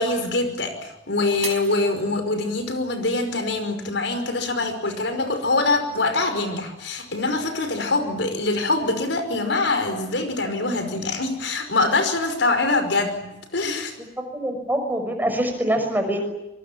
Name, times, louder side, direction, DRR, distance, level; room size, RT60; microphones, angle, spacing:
voice 1, 0.0-13.3 13.5-13.9, left 2 dB, 85° left, 7 dB, 5.3 m, -24 dB
Shatter, 1.4-2.7 3.2-3.7 4.2-4.3, right 7 dB, 40° right, 4.2 m, -37 dB
voice 2, 14.2-16.2, right 1 dB, 10° right, 5 dB, 6.0 m, -25 dB
26.0 x 23.5 x 8.9 m, 0.94 s
head